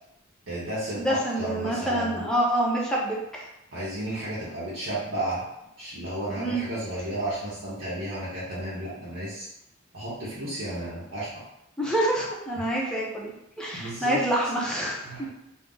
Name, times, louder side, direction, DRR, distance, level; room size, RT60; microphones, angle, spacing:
voice 1, 0.5-2.2 3.7-5.5 5.8-9.5 9.9-11.3 12.5-12.6 13.7-14.2 15.0-15.3, right 1 dB, 75° right, -9 dB, 0.8 m, -33 dB
voice 2, 1.0-3.4 6.4-6.6 11.8-15.0, right 1 dB, 5° left, -4 dB, 0.5 m, -27 dB
2.6 x 2.0 x 3.6 m, 0.85 s
head